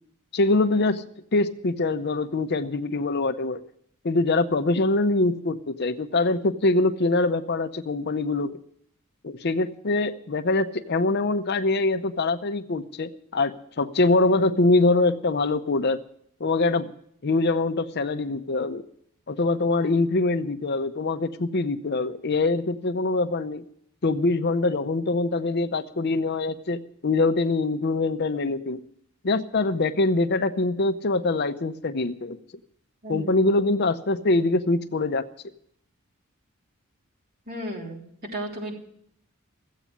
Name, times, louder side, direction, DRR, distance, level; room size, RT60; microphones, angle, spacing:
voice 1, 0.3-1.0 1.3-3.6 4.0-8.6 9.2-16.0 16.4-16.9 17.2-18.8 19.3-23.6 24.0-28.8 29.2-32.4 33.1-35.3, left 2 dB, 50° left, 10 dB, 0.7 m, -24 dB
voice 2, 33.0-33.5 37.5-38.0 38.3-38.7, equal, 45° right, 0 dB, 3.5 m, -34 dB
15.0 x 8.3 x 9.9 m, 0.68 s
head